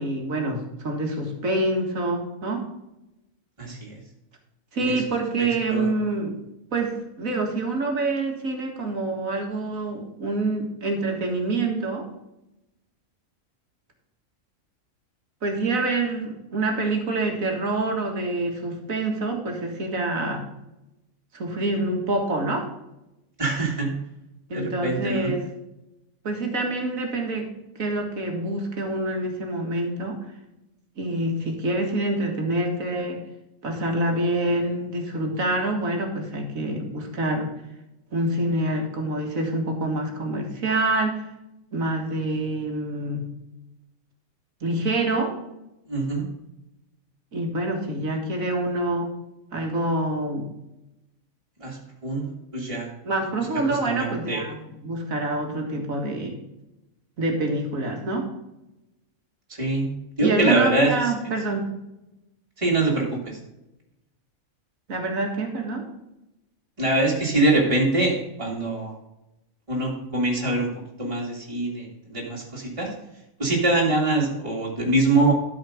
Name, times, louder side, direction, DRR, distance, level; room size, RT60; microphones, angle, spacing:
voice 1, 0.0-2.6 4.7-6.4 6.7-12.1 15.4-20.4 21.3-22.7 24.5-25.4 26.2-27.5 27.8-30.2 31.0-33.2 33.6-37.5 38.1-41.2 41.7-43.3 44.6-45.3 47.3-49.1 49.5-50.5 53.0-56.4 57.2-58.3 60.2-61.7 64.9-65.8, right 2 dB, 80° right, 2 dB, 2.2 m, -26 dB
voice 2, 3.6-4.0 4.8-5.0 5.4-5.9 23.4-23.9 24.5-25.3 45.9-46.2 51.6-52.9 53.7-54.4 59.6-59.9 60.2-60.9 62.6-63.4 66.8-68.9 69.7-70.7 71.0-72.9 73.4-75.3, right 2 dB, 25° right, -4 dB, 2.3 m, -24 dB
12.5 x 5.0 x 5.0 m, 0.93 s
omnidirectional pair, 1.4 m